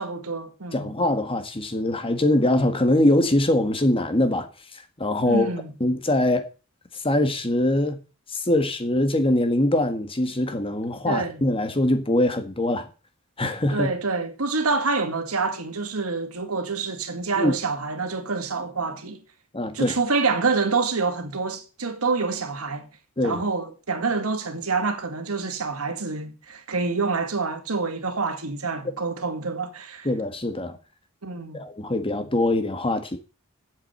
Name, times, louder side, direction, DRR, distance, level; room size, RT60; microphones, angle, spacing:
voice 1, 0.0-0.9 5.3-5.7 11.1-11.4 13.7-19.2 19.7-22.9 23.2-30.1 31.2-31.6, right 4 dB, 85° right, 1.9 m, -27 dB
voice 2, 0.7-4.5 5.0-5.5 5.8-6.4 7.0-8.0 8.3-12.9 13.4-13.9 17.4-17.5 19.5-20.0 23.2-23.4 30.0-30.8 31.5-33.2, left 1 dB, 25° left, 1.6 m, -22 dB
8.6 x 7.4 x 7.6 m
head